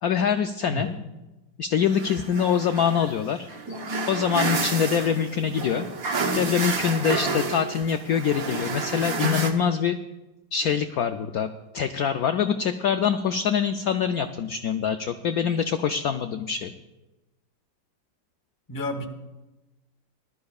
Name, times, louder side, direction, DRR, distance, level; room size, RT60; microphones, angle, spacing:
voice 1, 0.0-0.9 1.6-3.8 4.1-5.9 6.3-10.0 10.5-11.5 11.7-16.7, left 7 dB, 75° left, 7 dB, 0.8 m, -24 dB
sound 1, 1.8-9.5, right 3 dB, 50° right, 1.4 m, -30 dB
voice 2, 18.7-19.0, left 1 dB, 15° left, 4 dB, 0.7 m, -31 dB
20.5 x 12.5 x 2.4 m, 1.1 s
omnidirectional pair, 2.0 m